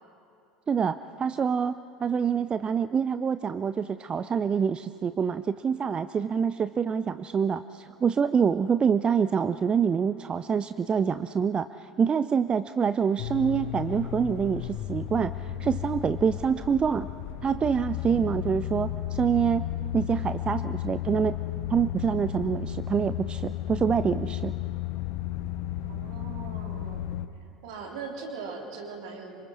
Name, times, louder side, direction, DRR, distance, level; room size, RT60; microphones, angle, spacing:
voice 1, 0.7-1.7 2.0-17.1 17.4-19.6 19.9-21.4 21.7-24.5, right 7 dB, 25° right, 13 dB, 0.5 m, -26 dB
sound 1, 13.2-27.3, left 12 dB, 55° left, 0.9 m, -33 dB
voice 2, 18.1-18.4 25.9-27.1 27.6-29.4, right 4 dB, 60° right, 1 dB, 3.4 m, -40 dB
28.5 x 26.5 x 4.3 m, 2.8 s
figure-of-eight pair, 70°, 4 cm